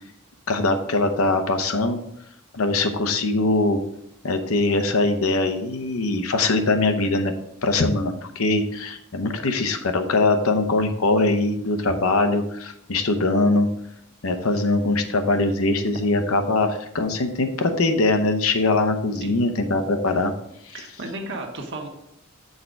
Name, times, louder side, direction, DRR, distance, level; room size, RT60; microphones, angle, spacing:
voice 1, 0.5-2.0 2.5-3.8 4.2-7.3 7.6-13.7 14.2-20.3 20.7-20.8, left 2 dB, 75° left, 7 dB, 0.8 m, -22 dB
voice 2, 20.7-21.9, right 2 dB, 60° right, 2 dB, 1.3 m, -34 dB
6.5 x 4.6 x 5.1 m, 0.77 s
head